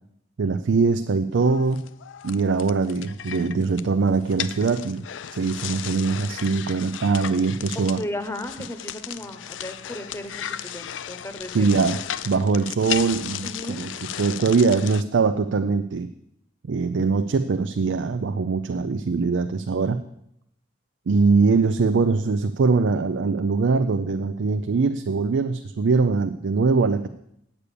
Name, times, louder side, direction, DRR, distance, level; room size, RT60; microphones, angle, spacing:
voice 1, 0.4-1.9 2.2-5.0 5.4-8.0 11.5-12.0 12.3-13.9 14.2-16.1 16.7-20.0 21.1-27.1, right 4 dB, 80° right, 9 dB, 0.4 m, -22 dB
sound 1, 1.4-15.0, left 10 dB, 85° left, 0.4 m, -35 dB
voice 2, 7.7-11.7 13.4-13.9, left 1 dB, 15° left, 8 dB, 1.0 m, -35 dB
8.4 x 8.3 x 6.9 m, 0.78 s
head